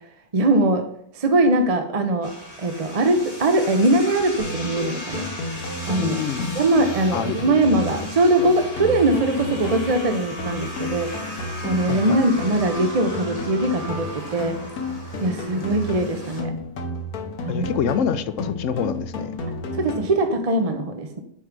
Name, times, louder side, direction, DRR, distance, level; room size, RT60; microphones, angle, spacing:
voice 1, 0.3-0.8 1.1-2.3 2.6-5.3 5.8-6.2 6.5-11.1 11.6-14.5 15.2-16.5 17.5-17.7 19.8-21.2, right 2 dB, 40° right, 5 dB, 0.6 m, -21 dB
sound 1, 2.2-16.4, left 1 dB, 25° left, 1.7 m, -37 dB
sound 2, 4.4-20.4, left 2 dB, 85° left, 1.5 m, -32 dB
voice 2, 6.0-6.5 7.1-7.4 11.9-12.2 17.5-19.4, left 7 dB, 65° left, 11 dB, 0.9 m, -26 dB
7.2 x 4.7 x 5.2 m, 0.70 s
omnidirectional pair, 1.5 m